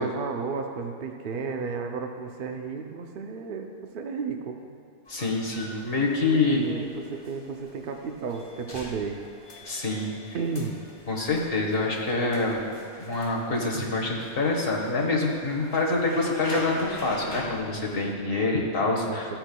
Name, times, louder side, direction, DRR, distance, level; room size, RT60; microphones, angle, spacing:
voice 1, 0.0-3.7 3.9-4.8 6.5-9.2 10.3-10.8 19.1-19.4, right 5 dB, 55° right, 4 dB, 0.8 m, -33 dB
voice 2, 5.1-6.7 9.6-10.2 11.1-12.6 13.0-19.3, left 3 dB, 55° left, -1 dB, 1.6 m, -26 dB
sound 1, 5.1-18.1, left 1 dB, 25° left, 0.7 m, -44 dB
13.5 x 8.8 x 2.3 m, 2.4 s
omnidirectional pair, 1.2 m